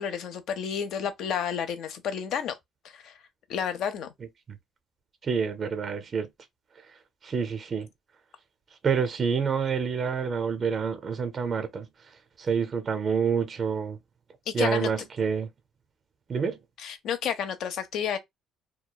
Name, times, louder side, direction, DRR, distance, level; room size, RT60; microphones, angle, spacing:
voice 1, 0.0-2.6 2.9-3.2 3.5-4.1 14.5-14.9 16.8-18.2, left 8 dB, 60° left, 0.6 m, -30 dB
voice 2, 5.2-6.3 7.2-7.9 8.8-11.9 12.4-14.0 14.5-15.5 16.3-16.6, right 6 dB, 30° right, 0.4 m, -27 dB
2.9 x 2.2 x 2.2 m
cardioid pair, 155°, 0 cm